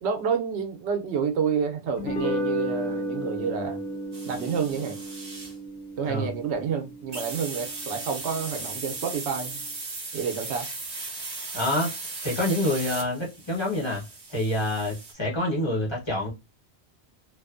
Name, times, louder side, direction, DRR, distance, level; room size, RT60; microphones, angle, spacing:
voice 1, 0.0-3.8 4.3-5.0 6.0-9.6 10.1-10.7, right 6 dB, 80° right, 0.8 m, -29 dB
sound 1, 2.0-8.5, equal, 65° left, 0.9 m, -33 dB
sound 2, 4.1-5.5 7.1-15.1, right 3 dB, 35° right, 0.7 m, -37 dB
voice 2, 11.5-11.9 12.2-14.0 14.3-16.3, left 1 dB, 25° left, 1.1 m, -27 dB
2.6 x 2.3 x 2.4 m
omnidirectional pair, 1.1 m